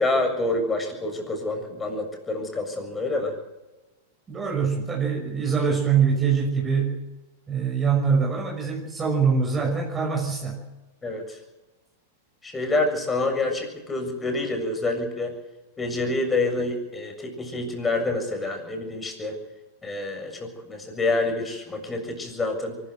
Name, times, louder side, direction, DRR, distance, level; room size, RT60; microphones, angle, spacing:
voice 1, 0.0-3.4 11.0-11.4 12.4-15.3 15.8-19.4 19.8-22.8, left 2 dB, 15° left, 4 dB, 7.2 m, -27 dB
voice 2, 4.3-7.0 7.5-10.6, right 6 dB, 20° right, -1 dB, 6.2 m, -23 dB
23.5 x 14.0 x 7.9 m, 1.1 s
hypercardioid pair, 110°, 0 cm